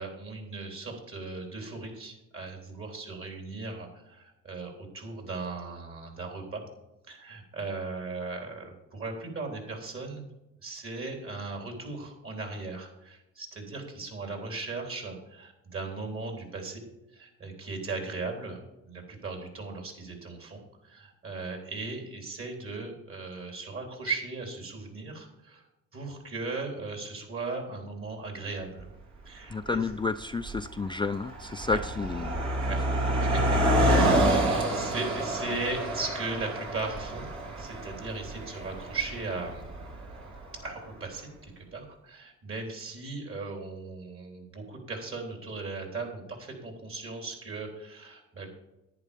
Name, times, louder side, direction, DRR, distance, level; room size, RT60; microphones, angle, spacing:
voice 1, 0.0-6.6 7.1-10.3 10.6-16.8 17.1-25.6 25.9-28.9 29.2-29.8 31.6-31.8 32.7-32.8 33.2-37.3 37.6-39.7 40.6-48.5, right 3 dB, 45° right, 2 dB, 3.8 m, -37 dB
Car passing by, 28.8-28.9 29.7-29.9 30.2-40.6, right 1 dB, 70° right, 3.0 m, -28 dB
voice 2, 29.5-32.7, left 4 dB, 15° left, 9 dB, 0.4 m, -31 dB
10.5 x 10.0 x 5.2 m, 0.94 s
cardioid pair, 90°, 30 cm